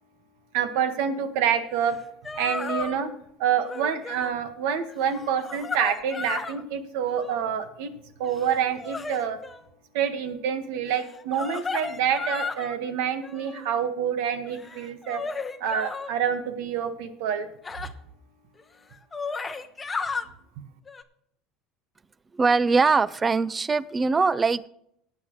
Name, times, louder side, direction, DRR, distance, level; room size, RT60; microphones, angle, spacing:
voice 1, 0.5-2.0 2.3-3.1 3.4-7.9 8.2-9.4 9.9-15.2 15.6-17.5, right 8 dB, 80° right, 9 dB, 1.6 m, -27 dB
sound 1, 1.9-2.0 2.2-3.0 3.6-4.3 4.9-6.6 7.1-7.6 8.2-9.6 11.0-12.8 13.2-13.8 14.4-16.1 17.6-17.9 18.6-18.7 18.9-20.3 20.9-21.0, left 4 dB, 15° left, 0.8 m, -34 dB
voice 2, 22.3-24.7, right 4 dB, 20° right, 19 dB, 0.4 m, -22 dB
18.0 x 8.8 x 3.2 m, 0.74 s
cardioid pair, 145°, 0 cm